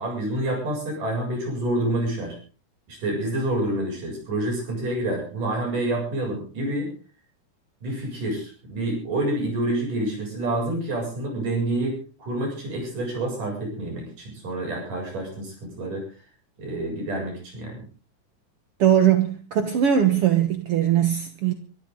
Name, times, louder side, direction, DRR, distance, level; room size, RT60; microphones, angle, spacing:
voice 1, 0.0-2.4 2.9-6.9 7.8-16.1 16.6-17.9, right 1 dB, 50° right, 9.0 m, -28 dB
voice 2, 18.8-21.5, right 10 dB, 70° right, 1.4 m, -20 dB
24.0 x 13.5 x 4.0 m
omnidirectional pair, 4.6 m